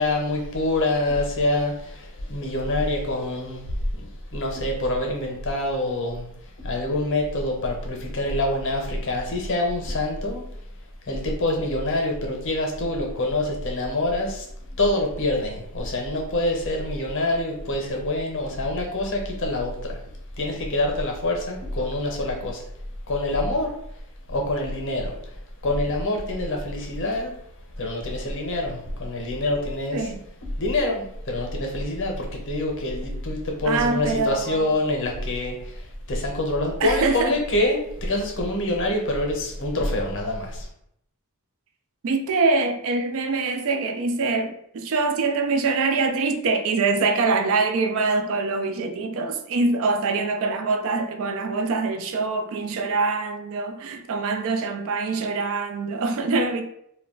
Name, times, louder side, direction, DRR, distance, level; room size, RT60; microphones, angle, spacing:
voice 1, 0.0-10.4 11.0-20.0 20.4-22.6 23.1-23.8 24.3-27.3 27.8-30.1 30.6-40.7, left 1 dB, 60° left, 0.7 m, -26 dB
voice 2, 33.6-34.7 36.8-37.4 42.0-56.6, right 3 dB, 65° right, 0.4 m, -24 dB
2.3 x 2.1 x 3.6 m
head